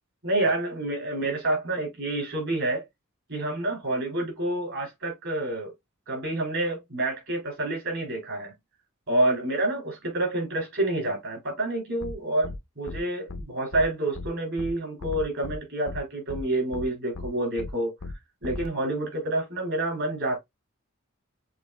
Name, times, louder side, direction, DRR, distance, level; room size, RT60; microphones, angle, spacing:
voice 1, 0.2-2.8 3.3-5.7 6.1-8.5 9.1-17.9 18.4-20.4, right 1 dB, 60° right, 3.3 m, -28 dB
sound 1, 12.0-12.1 12.4-12.6 12.9-13.0 13.3-13.4 13.7-13.8 14.1-14.3 14.6-14.7 15.0-15.6 15.9-16.0 16.3-16.4 16.7-16.8 17.1-17.3 17.6-17.7 18.0-18.1 18.4-18.7, left 3 dB, 70° left, 0.6 m, -36 dB
6.6 x 3.1 x 2.2 m
head